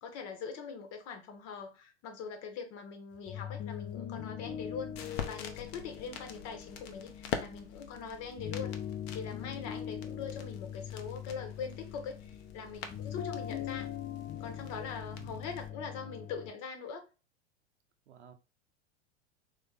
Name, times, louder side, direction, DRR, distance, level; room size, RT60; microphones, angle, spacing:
voice 1, 0.0-8.7 9.1-13.9 14.4-17.0, left 6 dB, 45° left, 1.2 m, -42 dB
sound 1, 3.1-16.5, left 9 dB, 25° left, 0.4 m, -42 dB
sound 2, 4.5-15.7, left 7 dB, 60° left, 0.9 m, -45 dB
voice 2, 15.1-15.4 18.1-18.3, right 10 dB, 80° right, 0.9 m, -53 dB
3.7 x 3.4 x 3.7 m
hypercardioid pair, 95°, 34 cm